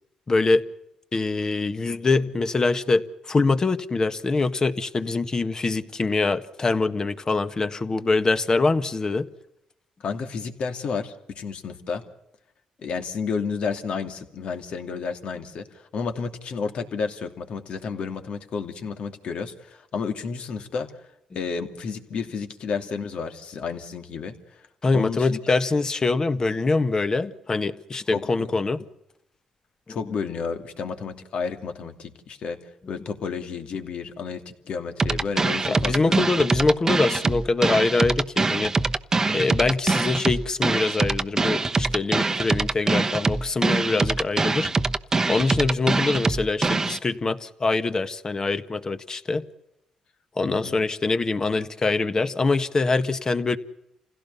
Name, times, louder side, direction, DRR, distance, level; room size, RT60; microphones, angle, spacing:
voice 1, 0.3-0.6 1.1-9.3 24.8-28.8 35.7-38.7 39.3-44.7 45.3-49.4 50.4-53.6, left 3 dB, 35° left, 1.6 m, -24 dB
voice 2, 10.0-12.0 12.8-20.9 21.3-24.4 24.9-25.4 28.1-28.5 29.9-32.6 32.9-36.3 50.4-50.8, left 5 dB, 65° left, 2.7 m, -31 dB
sound 1, 35.0-47.0, right 3 dB, 25° right, 1.0 m, -23 dB
28.0 x 16.5 x 7.0 m
cardioid pair, 85°, 2 cm